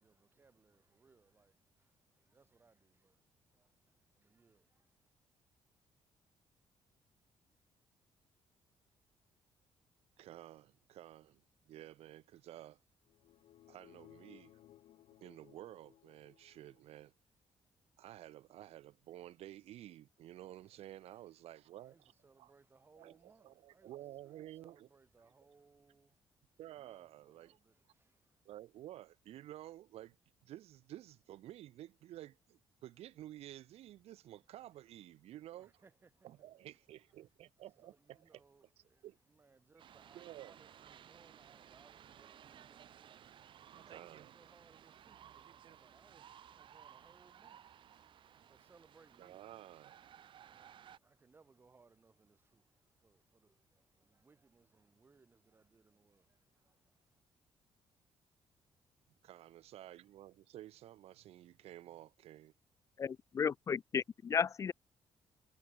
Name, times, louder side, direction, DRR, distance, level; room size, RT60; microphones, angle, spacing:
voice 1, 0.0-5.1 20.6-21.3 21.7-28.5 34.8-34.9 35.3-36.6 37.6-49.6 50.2-57.0, right 4 dB, 20° right, 6.9 m, -68 dB
voice 2, 10.2-12.8 13.7-14.6 15.2-17.1 18.0-22.1 22.4-22.5 23.0-23.1 23.4-24.9 26.6-27.6 28.4-30.2 30.4-35.7 36.2-38.4 39.0-39.2 40.1-40.5 43.9-44.3 49.2-49.9 59.2-62.5, right 13 dB, 85° right, 3.1 m, -52 dB
sound 1, 13.0-16.8, left 13 dB, 80° left, 2.1 m, -62 dB
sound 2, 39.8-51.0, right 10 dB, 55° right, 4.8 m, -58 dB
voice 3, 63.0-64.7, left 6 dB, 30° left, 0.6 m, -34 dB
cardioid pair, 165°, 10 cm